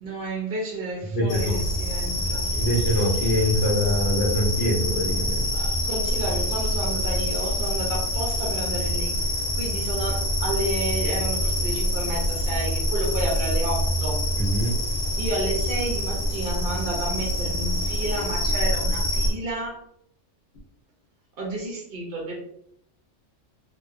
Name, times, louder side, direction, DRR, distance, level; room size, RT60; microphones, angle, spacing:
voice 1, 0.0-2.5 5.5-14.2 15.2-19.8 21.4-22.3, right 1 dB, 55° right, -2 dB, 0.7 m, -31 dB
voice 2, 1.1-1.6 2.5-5.7 14.4-14.8, equal, 70° left, -4 dB, 1.0 m, -24 dB
sound 1, 1.3-19.3, equal, 55° left, 0.5 m, -26 dB
2.8 x 2.2 x 2.4 m, 0.72 s
omnidirectional pair, 1.3 m